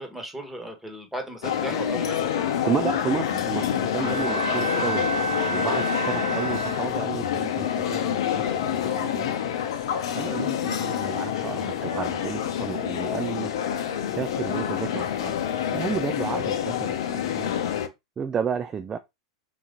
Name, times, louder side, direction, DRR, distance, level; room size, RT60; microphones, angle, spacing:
voice 1, 0.0-2.4 4.0-4.3 10.2-10.4, right 1 dB, 5° right, 1.4 m, -37 dB
sound 1, 1.4-17.9, left 9 dB, 65° left, 0.7 m, -27 dB
voice 2, 2.6-9.3 10.1-13.5 14.1-15.4 15.7-17.5 18.2-19.0, right 7 dB, 20° right, 0.4 m, -32 dB
Bowed string instrument, 4.0-7.2, right 4 dB, 60° right, 2.1 m, -30 dB
3.9 x 2.9 x 3.8 m
hypercardioid pair, 95°, 3 cm